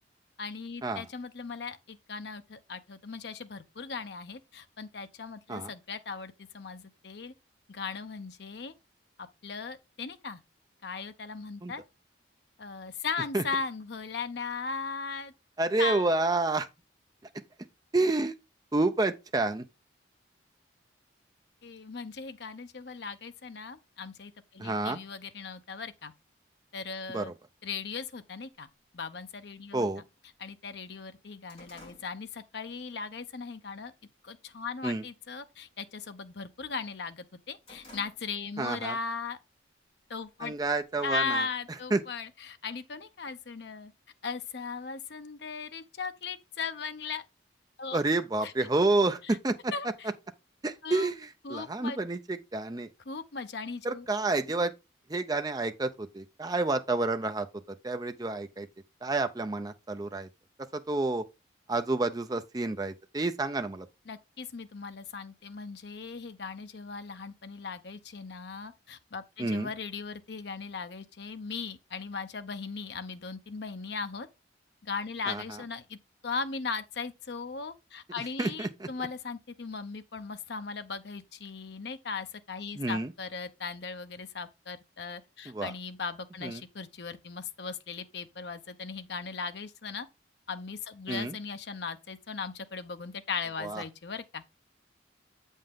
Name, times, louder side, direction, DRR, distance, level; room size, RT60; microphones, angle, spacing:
voice 1, 0.4-7.3 7.7-8.7 9.2-10.4 10.8-11.8 12.6-15.3 15.8-16.1 21.6-26.1 26.7-27.3 27.6-28.7 28.9-29.9 30.4-33.9 34.2-39.4 40.1-40.6 41.0-43.9 44.2-47.2 47.8-48.0 48.4-48.5 49.2-49.4 49.7-50.1 50.8-51.1 51.4-52.0 53.1-54.1 64.1-74.3 74.8-76.0 76.2-90.1 90.5-94.4, left 4 dB, 60° left, 0.7 m, -38 dB
voice 2, 15.6-16.7 17.9-18.3 18.7-19.6 24.6-25.0 27.1-27.3 29.7-30.0 34.8-35.0 38.6-39.0 40.4-41.4 41.9-42.0 47.9-49.7 50.6-52.9 53.8-54.7 55.1-57.5 57.8-58.7 59.0-60.3 60.7-61.2 61.7-63.9 69.4-69.7 75.3-75.6 78.4-78.9 82.8-83.1 85.5-85.7 86.4-86.6 91.1-91.3 93.6-93.8, right 2 dB, 20° right, 0.5 m, -29 dB
sound 1, 30.2-30.3 30.6-33.0 33.4-33.7 34.2-34.7 34.9-35.2 35.5-36.8 37.2-38.7 39.0-39.1 40.0-40.9, left 1 dB, 30° left, 3.8 m, -55 dB
7.7 x 5.5 x 3.6 m
head